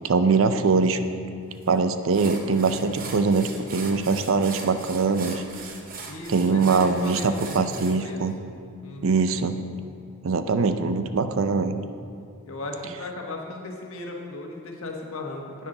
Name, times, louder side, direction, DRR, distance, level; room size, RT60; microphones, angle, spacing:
voice 1, 0.0-1.0 1.7-5.4 6.3-8.3 9.0-9.5 10.2-11.8, right 4 dB, 70° right, 10 dB, 0.5 m, -22 dB
sound 1, 1.6-1.7 2.1-8.0, right 4 dB, 40° right, 0.9 m, -40 dB
voice 2, 6.1-8.2 8.8-9.2 12.5-15.7, left 2 dB, 75° left, 1 dB, 1.3 m, -36 dB
10.0 x 9.2 x 3.9 m, 2.4 s
head